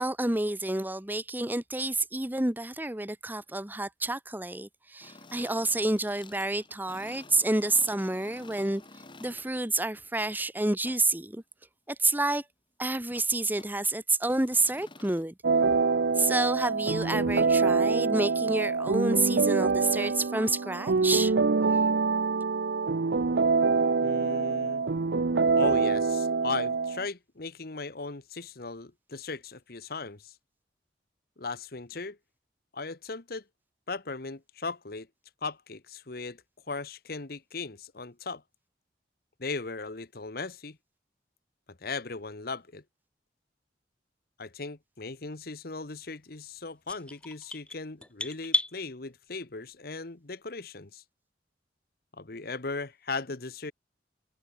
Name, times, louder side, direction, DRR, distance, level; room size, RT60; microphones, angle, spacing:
voice 1, 0.0-8.8 9.2-11.4 11.9-12.4 12.8-15.3 16.2-21.3, right 2 dB, 10° right, 1.0 m, -29 dB
sound 1, 5.0-9.7 10.8-11.0 13.1-13.3 13.5-13.8 14.2-15.2, left 3 dB, 30° left, 2.9 m, -51 dB
sound 2, 15.4-27.1, right 4 dB, 75° right, 0.6 m, -25 dB
voice 2, 24.0-24.8 25.6-30.3 31.4-32.2 32.7-33.4 33.9-35.1 35.4-38.4 39.4-40.8 41.7-42.8 44.4-51.0 52.1-53.7, left 3 dB, 60° left, 1.3 m, -37 dB
sound 3, 46.9-48.7, left 2 dB, 5° left, 0.4 m, -32 dB
head